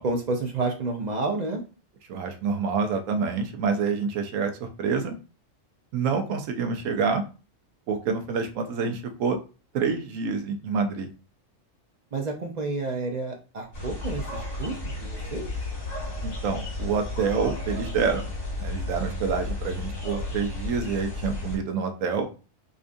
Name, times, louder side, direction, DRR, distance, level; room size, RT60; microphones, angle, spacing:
voice 1, 0.0-1.6 12.1-15.5, right 3 dB, 50° right, 2 dB, 0.5 m, -30 dB
voice 2, 2.1-5.2 5.9-7.2 7.9-9.4 9.7-11.1 16.2-18.2 18.6-22.3, right 5 dB, 85° right, 6 dB, 1.0 m, -27 dB
sound 1, 13.7-21.6, left 2 dB, 85° left, 1.9 m, -33 dB
5.1 x 2.4 x 2.5 m, 0.34 s
omnidirectional pair, 1.3 m